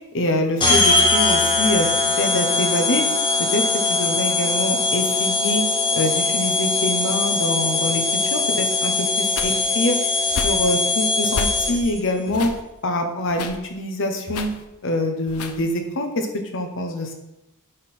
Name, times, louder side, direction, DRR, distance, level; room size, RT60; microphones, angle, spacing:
voice 1, 0.1-1.9 2.2-3.0 3.4-5.6 5.9-10.0 10.3-12.5 12.8-14.5 14.8-16.3 16.5-17.1, left 1 dB, 60° left, 5 dB, 1.1 m, -25 dB
sound 1, 0.6-12.0, left 3 dB, 20° left, 1.3 m, -21 dB
sound 2, 9.4-9.8 10.3-10.7 11.3-12.0 12.3-12.6 13.3-13.6 14.3-14.7 15.3-15.7, left 4 dB, 85° left, 0.7 m, -31 dB
10.0 x 4.0 x 4.4 m, 0.94 s
head